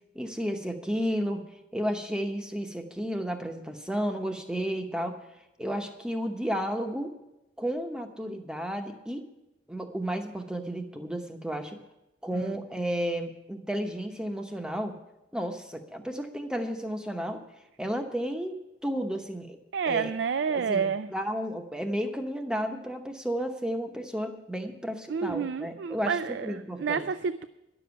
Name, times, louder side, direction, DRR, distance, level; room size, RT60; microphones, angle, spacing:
voice 1, 0.1-1.4 1.7-5.2 5.6-7.1 7.6-9.2 9.7-11.8 12.2-14.9 15.3-17.4 17.8-18.6 18.8-19.6 19.9-20.1 20.5-27.1, equal, 5° right, 5 dB, 0.9 m, -32 dB
voice 2, 19.7-21.1 25.1-27.4, right 6 dB, 65° right, 12 dB, 0.4 m, -29 dB
11.0 x 7.0 x 9.5 m, 0.95 s
head